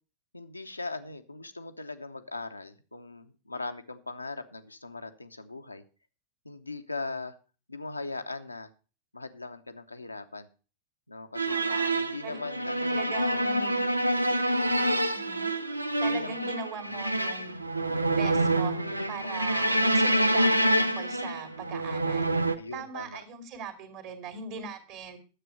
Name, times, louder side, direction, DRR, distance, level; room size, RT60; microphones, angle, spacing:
voice 1, 0.3-5.8 6.4-7.4 7.7-8.7 9.1-10.5 11.1-11.6 12.0-13.5 14.6-15.0 16.1-16.4 16.9-17.0 19.2-19.7 22.6-23.2, left 3 dB, 85° left, 7 dB, 0.8 m, -39 dB
sound 1, 11.3-22.5, right 1 dB, 85° right, 0.6 m, -27 dB
voice 2, 11.5-11.9 12.2-12.4 12.9-13.9 15.1-15.5 16.0-17.6 18.1-18.8 19.1-20.5 20.8-22.4 22.7-25.2, right 6 dB, 45° right, 8 dB, 2.5 m, -40 dB
10.0 x 7.6 x 5.4 m, 0.36 s
figure-of-eight pair, 90°, 0 cm